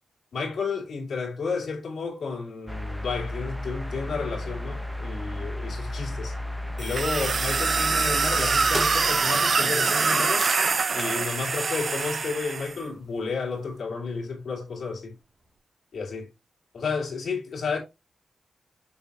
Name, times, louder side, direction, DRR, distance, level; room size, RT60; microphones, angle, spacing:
voice 1, 0.3-6.4 6.8-10.5 10.9-15.1 15.9-16.3 16.7-17.8, left 4 dB, 70° left, 2.7 m, -31 dB
sound 1, 2.7-10.1, left 1 dB, ahead, 0.8 m, -34 dB
sound 2, 6.8-12.7, right 4 dB, 50° right, 0.7 m, -24 dB
sound 3, 10.1-15.6, right 2 dB, 30° right, 2.3 m, -46 dB
6.3 x 5.6 x 2.8 m
cardioid pair, 85°, 0 cm